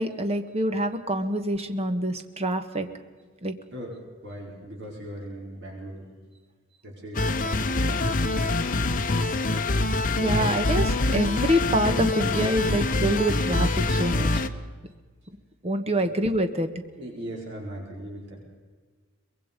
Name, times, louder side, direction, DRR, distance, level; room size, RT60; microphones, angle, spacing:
voice 1, 0.0-2.9 3.4-3.5 10.2-14.3 15.6-16.7, equal, 30° right, 8 dB, 1.5 m, -26 dB
voice 2, 4.2-6.0 6.8-8.6 17.0-18.4, right 1 dB, 60° right, -1 dB, 4.7 m, -39 dB
sound 1, 7.1-14.5, left 2 dB, 40° left, 1.0 m, -25 dB
23.5 x 21.5 x 5.3 m, 1.5 s
head